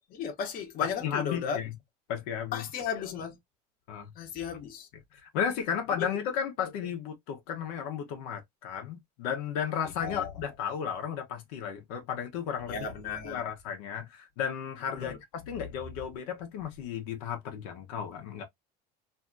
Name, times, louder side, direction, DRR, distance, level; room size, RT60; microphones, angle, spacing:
voice 1, 0.1-1.6 2.5-3.4 4.2-4.9 6.0-6.1 10.0-10.3 12.7-13.4 14.9-15.2, left 6 dB, 50° left, 0.9 m, -35 dB
voice 2, 0.8-1.7 2.1-2.7 3.9-4.1 5.1-12.9 13.2-18.4, left 8 dB, 80° left, 0.9 m, -34 dB
2.7 x 2.4 x 2.5 m
supercardioid pair, 115°, 19 cm